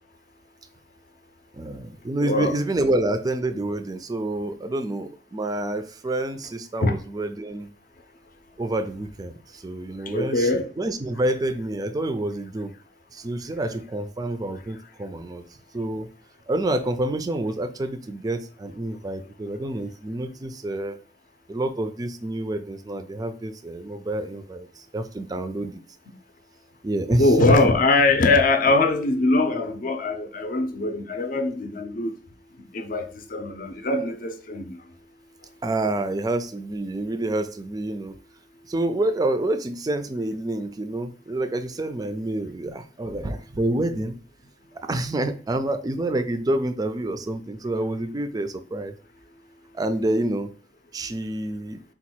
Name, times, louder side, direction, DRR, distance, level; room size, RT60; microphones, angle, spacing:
voice 1, 1.5-7.7 8.6-12.7 13.1-16.1 16.5-21.0 21.5-25.8 26.8-27.7 35.6-38.2 38.7-44.2 44.7-48.9 49.7-50.5 50.9-51.8, right 1 dB, 20° right, 0.4 m, -28 dB
voice 2, 2.2-2.6 6.8-6.9 10.1-10.7 27.2-32.1 32.7-34.7, left 2 dB, 50° left, 0.6 m, -22 dB
4.1 x 2.3 x 4.3 m
head